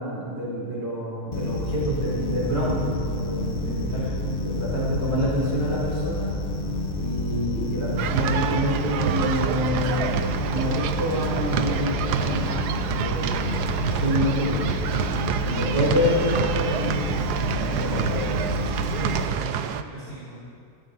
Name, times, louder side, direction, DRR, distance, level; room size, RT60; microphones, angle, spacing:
voice 1, 0.0-6.4 7.0-13.4 13.9-14.6 15.5-18.3, equal, 40° right, -7 dB, 5.2 m, -28 dB
sound 1, 1.3-19.3, left 1 dB, 35° left, 1.2 m, -29 dB
voice 2, 3.7-4.1 13.3-13.7 15.4-16.9 18.6-20.4, right 2 dB, 60° right, -12 dB, 4.7 m, -41 dB
sound 2, 8.0-19.8, right 9 dB, 85° right, 1.2 m, -28 dB
17.5 x 16.0 x 4.1 m, 2.4 s
omnidirectional pair, 1.7 m